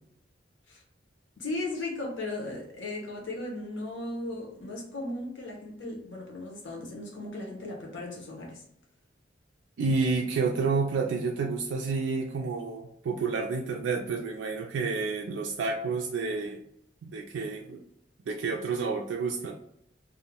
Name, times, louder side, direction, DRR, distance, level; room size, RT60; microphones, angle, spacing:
voice 1, 1.4-8.6, left 2 dB, 85° left, 0 dB, 0.8 m, -36 dB
voice 2, 9.8-16.6 17.0-17.8 18.3-19.5, right 4 dB, 90° right, 0 dB, 0.3 m, -30 dB
2.5 x 2.0 x 2.8 m, 0.74 s
head